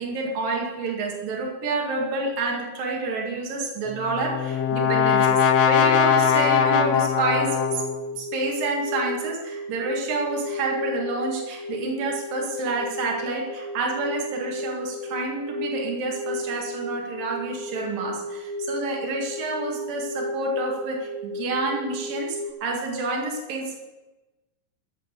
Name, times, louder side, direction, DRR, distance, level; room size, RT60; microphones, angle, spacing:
voice 1, 0.0-7.8 8.2-23.8, right 3 dB, 70° right, 0 dB, 3.7 m, -28 dB
Brass instrument, 3.9-8.1, left 7 dB, 75° left, 1.5 m, -21 dB
sound 1, 4.5-22.5, left 1 dB, 60° left, 2.2 m, -34 dB
16.0 x 7.9 x 6.7 m, 1.1 s
omnidirectional pair, 4.1 m